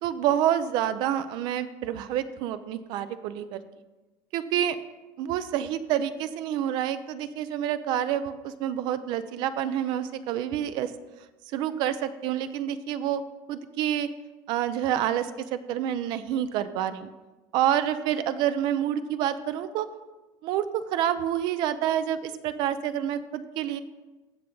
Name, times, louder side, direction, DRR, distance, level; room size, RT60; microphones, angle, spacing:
voice 1, 0.0-3.6 4.3-4.8 5.2-10.9 11.5-13.2 13.5-14.1 14.5-17.1 17.5-19.9 20.4-23.8, right 10 dB, 45° right, 12 dB, 0.5 m, -28 dB
15.5 x 5.8 x 3.8 m, 1.2 s
cardioid pair, 155°, 10 cm